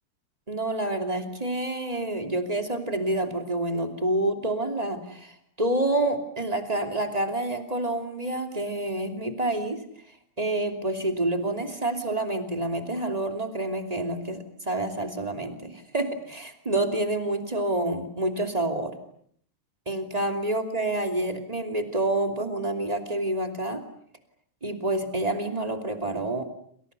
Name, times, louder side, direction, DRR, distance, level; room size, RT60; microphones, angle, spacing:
voice 1, 0.5-9.8 10.1-18.9 19.9-23.8 24.6-26.5, right 2 dB, 10° right, 5 dB, 1.9 m, -28 dB
29.0 x 27.0 x 6.9 m, 0.65 s
omnidirectional pair, 4.9 m